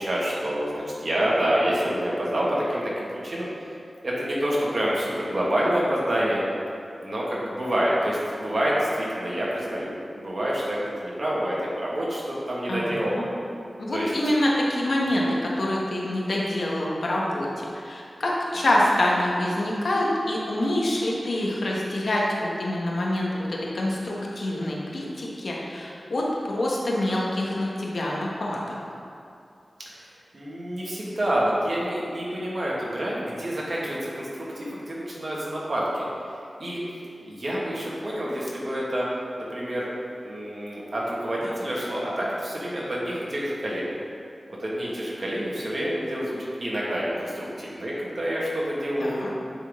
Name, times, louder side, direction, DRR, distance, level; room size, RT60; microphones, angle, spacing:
voice 1, 0.0-3.7 4.0-6.4 7.0-13.1 13.9-14.1 15.2-15.3 29.8-36.1 36.6-36.8 37.2-39.1 39.4-39.9 40.2-43.8 44.5-49.3, equal, 50° right, -6 dB, 1.6 m, -27 dB
voice 2, 12.7-13.3 13.8-17.5 17.7-28.7 49.0-49.3, left 1 dB, 70° left, -3 dB, 1.1 m, -26 dB
8.8 x 3.9 x 3.5 m, 2.5 s
wide cardioid pair, 75°, 0 cm